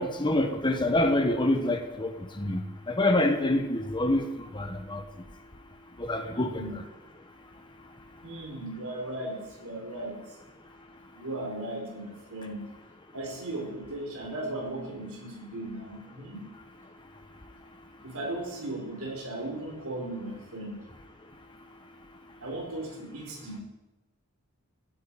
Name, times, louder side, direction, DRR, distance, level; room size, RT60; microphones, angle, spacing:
voice 1, 0.0-5.0 6.0-6.6, left 1 dB, 20° left, 5 dB, 1.2 m, -26 dB
voice 2, 6.3-6.7 8.2-10.2 11.1-12.6 13.1-16.4 18.0-20.8 22.4-23.6, right 1 dB, 85° right, 0 dB, 4.9 m, -37 dB
17.5 x 13.0 x 5.1 m, 1.0 s
head